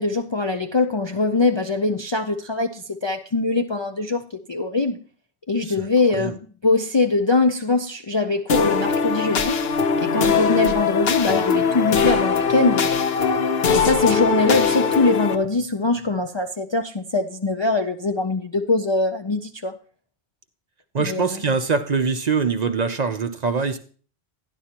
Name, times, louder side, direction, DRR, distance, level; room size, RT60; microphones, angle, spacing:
voice 1, 0.0-5.0 5.5-9.6 10.0-13.0 13.7-19.8 21.0-21.4, left 3 dB, 40° left, 5 dB, 0.4 m, -22 dB
sound 1, 8.5-15.3, left 5 dB, 65° left, 1.1 m, -21 dB
voice 2, 20.9-23.8, right 5 dB, 45° right, 8 dB, 0.7 m, -23 dB
12.5 x 10.5 x 2.9 m, 0.42 s
omnidirectional pair, 1.1 m